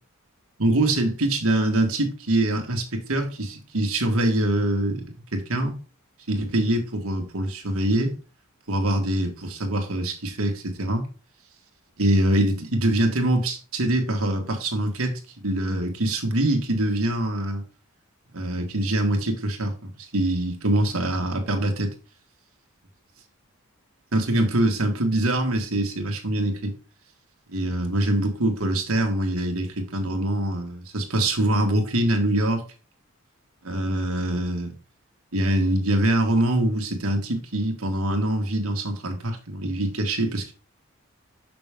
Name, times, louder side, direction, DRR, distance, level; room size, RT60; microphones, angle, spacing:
voice 1, 0.6-5.0 5.3-5.7 6.3-8.1 8.7-11.0 12.0-17.6 18.3-21.9 24.1-26.7 27.5-32.6 33.6-34.7 35.3-40.5, right 1 dB, 85° right, 1.7 m, -24 dB
6.2 x 6.0 x 3.6 m
head